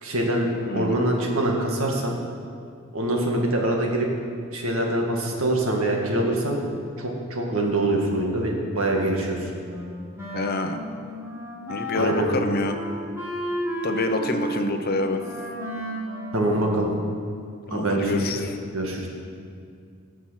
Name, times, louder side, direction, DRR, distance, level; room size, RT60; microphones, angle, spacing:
voice 1, 0.0-2.1 2.9-4.1 4.5-6.6 7.0-9.5 11.9-12.3 16.3-16.9 17.7-18.5 18.7-19.1, right 1 dB, 65° right, 0 dB, 1.9 m, -24 dB
voice 2, 0.6-1.0 10.3-10.8 11.7-12.8 13.8-15.2 17.7-18.6, left 2 dB, 45° left, 5 dB, 0.9 m, -26 dB
Wind instrument woodwind instrument, 9.7-17.1, right 1 dB, 10° right, 2.1 m, -33 dB
17.0 x 6.2 x 5.8 m, 2.3 s
head